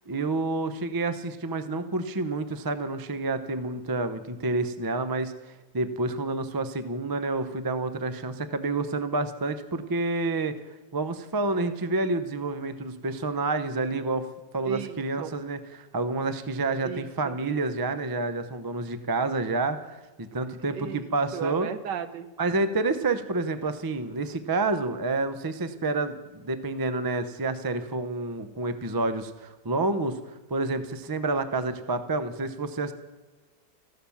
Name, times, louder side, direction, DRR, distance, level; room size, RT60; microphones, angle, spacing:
voice 1, 0.1-10.6 10.9-14.3 14.5-21.7 22.4-32.9, right 3 dB, 30° right, 10 dB, 0.4 m, -29 dB
voice 2, 14.6-15.3 16.8-17.3 20.7-21.1 21.3-22.3, right 8 dB, 75° right, 11 dB, 1.5 m, -35 dB
14.5 x 12.0 x 7.1 m, 1.2 s
omnidirectional pair, 1.9 m